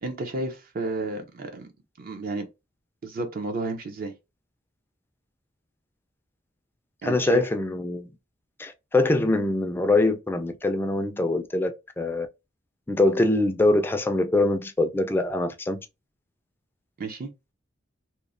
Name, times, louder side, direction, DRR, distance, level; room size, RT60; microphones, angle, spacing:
voice 1, 0.0-1.7 2.0-2.5 3.0-4.1 7.0-7.4 17.0-17.3, right 2 dB, 50° right, 0.5 m, -32 dB
voice 2, 7.0-8.1 8.6-11.7 12.0-12.3 12.9-15.8, left 2 dB, 10° left, 0.3 m, -23 dB
2.9 x 2.0 x 2.4 m
head